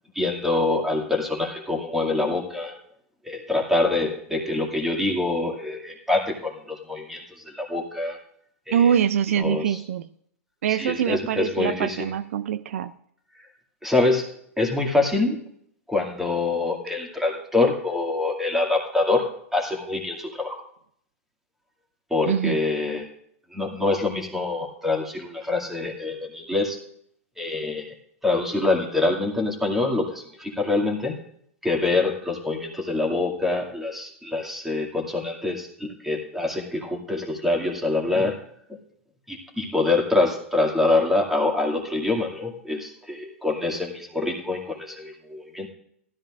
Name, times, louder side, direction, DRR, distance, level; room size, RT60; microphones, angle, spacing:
voice 1, 0.1-2.8 3.2-8.2 8.7-9.0 9.3-9.8 10.7-12.1 13.3-13.5 13.8-15.4 15.9-20.6 22.1-23.1 23.5-26.8 27.4-27.9 28.2-31.2 31.6-38.4 39.3-45.7, left 2 dB, 5° right, 0 dB, 2.3 m, -25 dB
voice 2, 8.7-10.1 10.6-12.9 22.3-22.6, right 9 dB, 75° right, 15 dB, 0.4 m, -24 dB
16.0 x 13.5 x 2.5 m, 0.68 s
hypercardioid pair, 120°, 8 cm